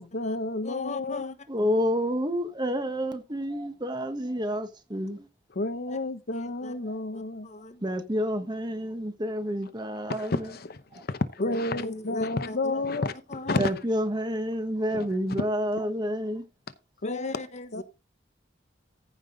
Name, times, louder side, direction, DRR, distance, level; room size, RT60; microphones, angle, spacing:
voice 1, 0.0-1.3 5.5-7.5 10.1-13.8 14.9-15.1 17.0-17.4 17.7-17.8, left 2 dB, 55° left, 0.9 m, -31 dB
voice 2, 0.6-1.3 5.9-6.0 6.3-6.7 7.1-7.8 11.4-12.8 13.3-13.6 17.0-17.8, left 2 dB, 40° left, 1.2 m, -39 dB
voice 3, 1.5-5.3 7.8-10.5 10.9-11.0 13.6-16.4, equal, 25° right, 1.4 m, -29 dB
14.5 x 5.7 x 3.9 m
head